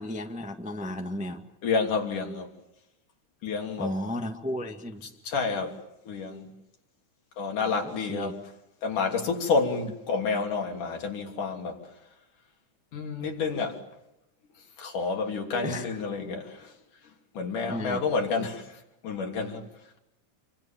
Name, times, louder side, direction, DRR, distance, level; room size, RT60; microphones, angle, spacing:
voice 1, 0.0-1.4 3.8-5.1 7.8-8.3 15.6-16.0 17.7-18.0, left 1 dB, 5° right, 0.9 m, -34 dB
voice 2, 1.6-2.5 3.4-3.9 5.2-6.5 7.4-8.4 8.8-11.8 12.9-13.8 14.8-16.7 17.3-19.7, left 4 dB, 90° left, 4.7 m, -29 dB
28.5 x 24.5 x 7.4 m
omnidirectional pair, 3.5 m